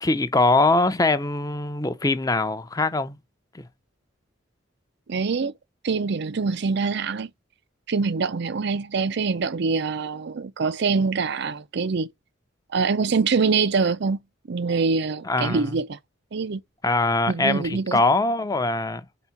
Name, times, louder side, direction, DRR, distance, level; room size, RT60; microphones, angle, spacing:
voice 1, 0.0-3.2 3.5-3.6 15.2-15.6 16.8-19.0, left 2 dB, 20° left, 0.6 m, -22 dB
voice 2, 5.1-5.5 5.8-7.3 7.9-12.1 12.7-14.2 14.5-16.0 16.3-16.6 17.3-18.0, right 4 dB, 60° right, 0.5 m, -24 dB
5.4 x 4.0 x 5.8 m
head